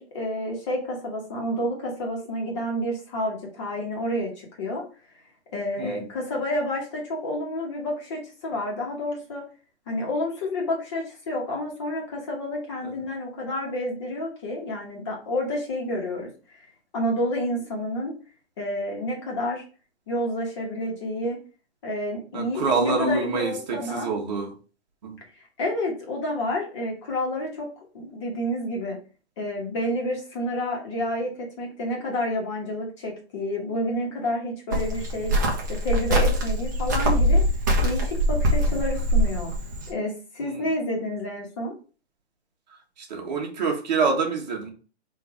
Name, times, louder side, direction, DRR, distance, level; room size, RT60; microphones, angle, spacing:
voice 1, 0.0-4.9 5.5-9.5 9.9-16.3 16.9-18.1 18.6-19.6 20.1-21.4 21.8-24.1 25.6-27.7 27.9-29.0 29.4-31.3 31.6-35.3 35.7-37.4 37.8-39.5 39.9-41.7, left 1 dB, 25° left, 1.3 m, -29 dB
voice 2, 22.3-24.5 25.0-25.2 40.4-40.7 43.0-44.7, right 4 dB, 40° right, 1.3 m, -26 dB
Cricket, 34.7-39.9, equal, 15° right, 0.6 m, -23 dB
3.8 x 2.7 x 4.8 m
hypercardioid pair, 165°, 33 cm